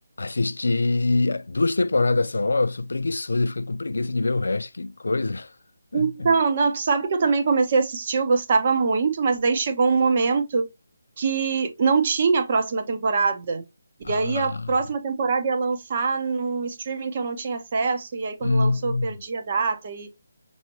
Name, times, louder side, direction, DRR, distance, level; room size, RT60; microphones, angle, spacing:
voice 1, 0.2-5.5 5.9-6.3 14.0-14.7 18.4-19.2, left 3 dB, 70° left, 0.3 m, -24 dB
voice 2, 5.9-10.6 11.2-13.6 14.1-20.1, right 4 dB, 40° right, 0.9 m, -23 dB
5.9 x 2.7 x 2.9 m
figure-of-eight pair, 155°, 0 cm